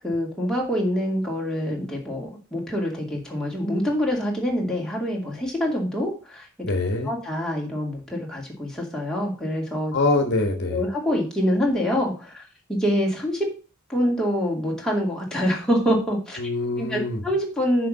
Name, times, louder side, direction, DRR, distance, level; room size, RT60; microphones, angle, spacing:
voice 1, 0.0-6.5 7.0-9.9 10.7-12.4 12.7-13.5 13.9-16.4 16.8-17.9, equal, 5° left, -3 dB, 2.5 m, -25 dB
voice 2, 6.6-7.1 9.9-10.8 16.4-17.2, left 2 dB, 50° left, 4 dB, 1.3 m, -24 dB
6.7 x 5.2 x 6.5 m, 0.35 s
head